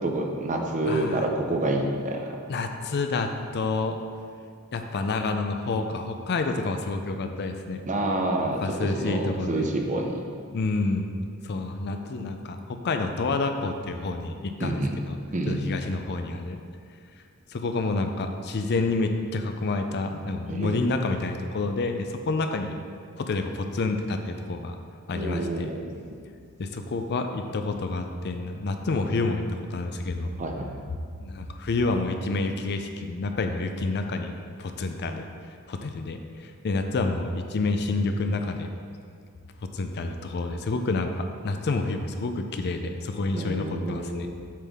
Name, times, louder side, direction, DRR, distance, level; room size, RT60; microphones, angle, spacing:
voice 1, 0.0-2.3 7.9-8.6 8.9-10.2 14.6-15.0 15.3-15.7 20.5-20.8 25.1-25.9 30.4-30.7 43.3-44.3, right 2 dB, 35° right, 2 dB, 0.6 m, -28 dB
voice 2, 0.8-1.3 2.5-4.0 4.7-7.8 8.6-9.7 10.5-11.1 11.4-15.2 15.5-16.6 17.5-22.8 23.2-24.8 25.1-25.7 26.6-30.3 31.2-34.3 34.6-35.3 35.7-38.7 39.6-44.3, left 3 dB, 50° left, 6 dB, 0.4 m, -28 dB
7.4 x 5.6 x 3.5 m, 2.2 s
head